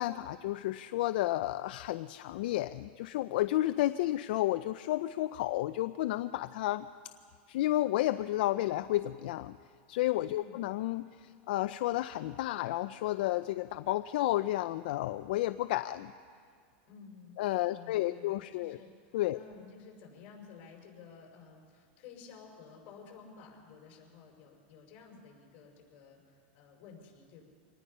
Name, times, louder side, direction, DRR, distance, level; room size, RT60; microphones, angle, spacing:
voice 1, 0.0-6.9 7.5-9.6 9.9-16.1 17.4-18.8 19.1-19.4, left 15 dB, 65° left, 11 dB, 0.5 m, -31 dB
voice 2, 16.9-17.4 17.7-18.9 19.3-26.2 26.5-27.4, left 6 dB, 40° left, 1 dB, 5.3 m, -53 dB
25.5 x 19.5 x 5.5 m, 2.1 s
supercardioid pair, 150°, 6 cm